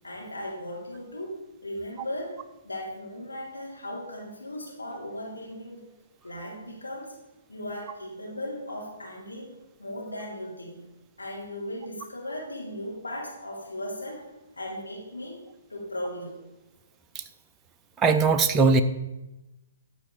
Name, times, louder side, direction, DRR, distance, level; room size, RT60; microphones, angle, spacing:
voice 1, 0.0-5.8 6.2-7.1 7.5-9.5 9.8-10.8 11.2-14.3 14.6-15.4 15.7-16.3, left 1 dB, 90° left, -3 dB, 3.3 m, -37 dB
voice 2, 18.0-18.8, right 4 dB, 20° right, 6 dB, 0.6 m, -19 dB
13.0 x 4.8 x 4.9 m, 1.0 s
figure-of-eight pair, 130°, 0 cm